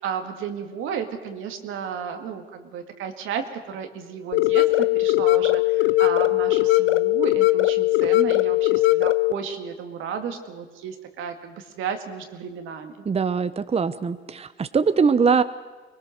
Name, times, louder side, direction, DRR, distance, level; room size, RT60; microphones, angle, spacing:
voice 1, 0.0-13.0, right 7 dB, 90° right, 5 dB, 2.1 m, -33 dB
sound 1, 4.3-9.3, left 17 dB, 75° left, 0.7 m, -20 dB
voice 2, 13.1-15.4, right 5 dB, 30° right, 12 dB, 0.8 m, -22 dB
24.5 x 20.5 x 6.5 m, 1.3 s
cardioid pair, 90°, 20 cm